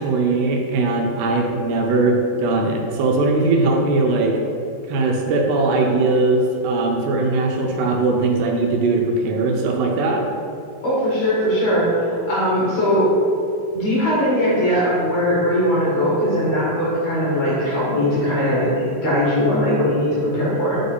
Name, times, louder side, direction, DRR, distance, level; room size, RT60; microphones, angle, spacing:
voice 1, 0.0-4.4 4.9-10.2, right 3 dB, 80° right, 1 dB, 2.7 m, -20 dB
voice 2, 10.8-13.1 13.7-20.8, equal, 55° left, -8 dB, 2.6 m, -20 dB
9.1 x 3.8 x 3.9 m, 2.5 s
omnidirectional pair, 4.7 m